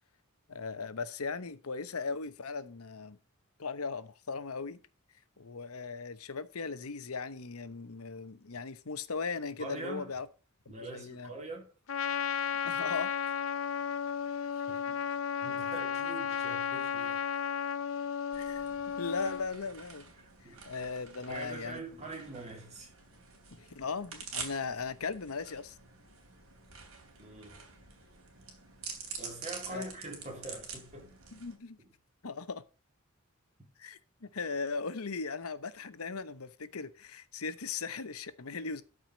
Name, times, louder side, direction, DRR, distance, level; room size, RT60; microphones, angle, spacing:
voice 1, 0.5-3.2 3.6-4.8 5.4-10.3 10.8-11.3 12.6-13.1 18.3-18.6 19.0-20.1 20.4-21.8 23.6-25.8 29.7-29.8 31.3-31.8 32.2-32.6 33.8-38.8, left 4 dB, 85° left, 1.0 m, -38 dB
voice 2, 9.6-10.1 10.7-11.7 14.7-15.0 15.4-17.2 20.2-20.6 21.3-22.9 27.2-27.6 29.2-31.2, right 2 dB, 30° right, 3.2 m, -44 dB
Trumpet, 11.9-19.5, left 7 dB, 65° left, 0.6 m, -34 dB
sound 1, 18.3-31.6, right 5 dB, 70° right, 3.1 m, -47 dB
13.0 x 5.0 x 6.1 m
head